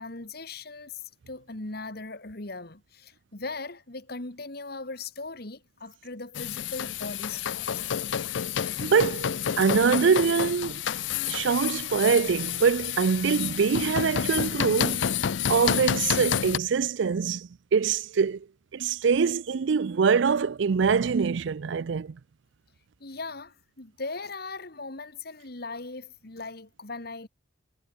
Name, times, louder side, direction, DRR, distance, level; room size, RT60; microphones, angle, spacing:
voice 1, 0.0-7.9 23.0-27.3, left 3 dB, 55° left, 2.1 m, -39 dB
sound 1, 6.3-16.6, left 8 dB, 70° left, 0.5 m, -29 dB
voice 2, 8.8-10.8 11.3-15.0 15.5-18.4 18.7-22.2, right 6 dB, 70° right, 0.4 m, -24 dB
head